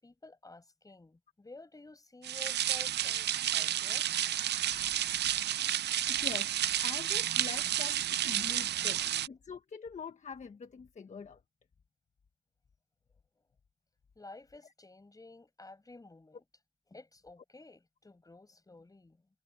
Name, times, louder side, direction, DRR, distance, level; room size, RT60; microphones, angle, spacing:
voice 1, 0.0-4.3 5.1-5.3 7.6-7.7 8.7-9.1 14.2-16.4 16.9-19.3, left 2 dB, 20° left, 6.1 m, -53 dB
sound 1, 2.2-9.3, right 11 dB, 60° right, 0.6 m, -31 dB
voice 2, 6.0-6.5 6.8-11.4, left 5 dB, 35° left, 1.5 m, -44 dB
cardioid pair, 90°, 20 cm